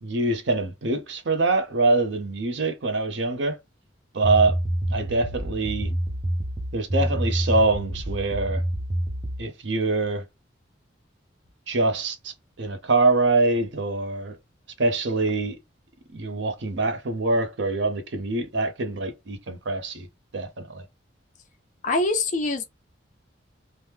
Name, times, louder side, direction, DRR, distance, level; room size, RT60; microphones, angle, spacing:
voice 1, 0.0-3.6 4.1-4.6 4.9-5.9 6.7-8.6 9.4-10.2 11.7-14.4 14.8-15.6 16.1-20.1 20.3-20.8, right 3 dB, 70° right, 0.6 m, -24 dB
sound 1, 4.2-9.4, right 1 dB, 20° right, 0.5 m, -27 dB
voice 2, 21.8-22.6, left 2 dB, 40° left, 0.4 m, -24 dB
2.9 x 2.1 x 3.3 m
head